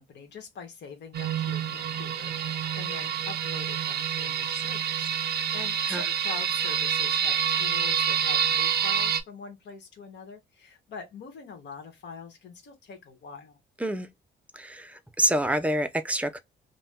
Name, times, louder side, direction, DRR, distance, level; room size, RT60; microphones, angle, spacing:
voice 1, 0.0-13.6, left 5 dB, 60° left, 1.1 m, -44 dB
sound 1, 1.1-9.2, right 8 dB, 55° right, 0.5 m, -27 dB
voice 2, 14.5-16.4, right 1 dB, 5° right, 0.5 m, -27 dB
2.6 x 2.1 x 3.4 m
cardioid pair, 90°, 20 cm